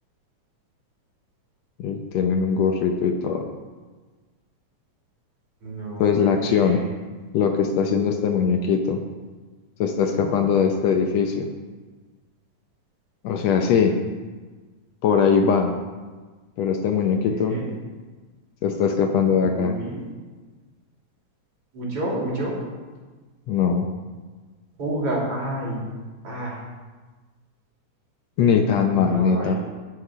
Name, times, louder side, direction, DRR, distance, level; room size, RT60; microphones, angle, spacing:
voice 1, 1.8-3.5 6.0-6.8 7.3-9.0 9.8-11.5 13.2-14.0 15.0-15.7 16.6-17.6 18.6-19.7 23.5-23.9 28.4-29.5, left 6 dB, 70° left, 4 dB, 1.8 m, -21 dB
voice 2, 5.6-6.9 10.2-10.3 17.2-17.7 19.4-20.1 21.7-22.6 24.8-25.8 26.2-26.6 28.9-29.6, right 1 dB, 50° right, -4 dB, 3.7 m, -30 dB
17.0 x 6.0 x 4.9 m, 1.4 s
omnidirectional pair, 3.5 m